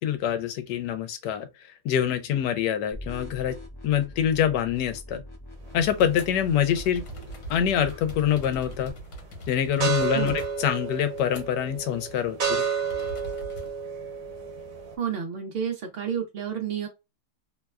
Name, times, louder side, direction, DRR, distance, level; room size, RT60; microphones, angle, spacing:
voice 1, 0.0-1.5 1.8-3.6 3.8-5.2 5.7-7.0 7.5-8.9 9.5-12.6, left 9 dB, 85° left, 1.2 m, -25 dB
sound 1, 2.9-8.9, left 1 dB, 35° left, 0.4 m, -43 dB
sound 2, 5.7-6.3 6.8-11.7 12.0-12.2 12.9-13.7, right 1 dB, 70° left, 1.3 m, -42 dB
sound 3, 5.7-15.0, right 6 dB, 60° right, 1.2 m, -32 dB
voice 2, 15.0-16.9, right 7 dB, 80° right, 0.5 m, -30 dB
3.0 x 2.1 x 2.3 m
omnidirectional pair, 1.8 m